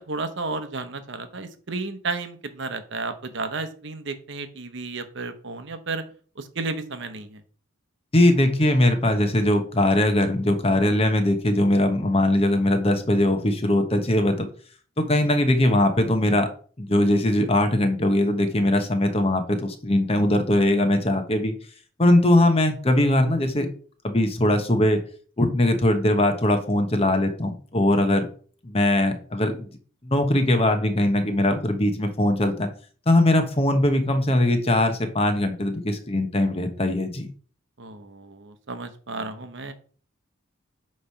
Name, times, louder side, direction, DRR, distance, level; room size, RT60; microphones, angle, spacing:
voice 1, 0.0-6.0 6.4-7.4 37.8-39.7, right 3 dB, 60° right, 10 dB, 0.8 m, -32 dB
voice 2, 8.1-14.5 15.0-16.5 16.8-21.6 22.0-23.7 24.0-25.0 25.4-28.3 28.6-29.7 30.0-32.7 33.1-37.3, left 1 dB, 30° left, 7 dB, 1.0 m, -21 dB
8.7 x 3.2 x 5.6 m, 0.43 s
head